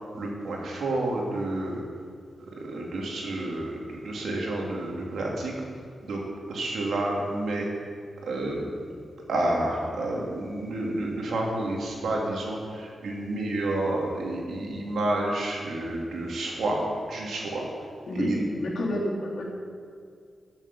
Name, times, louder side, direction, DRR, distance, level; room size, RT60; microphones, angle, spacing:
voice 1, 0.1-1.8 2.5-5.5 6.0-6.2 6.5-7.7 8.2-8.9 9.3-17.7 18.1-18.5, right 2 dB, 85° right, -2 dB, 2.9 m, -29 dB
voice 2, 18.1-19.6, left 1 dB, 60° left, -3 dB, 3.0 m, -30 dB
14.5 x 7.4 x 7.0 m, 2.2 s
wide cardioid pair, 170°, 0 cm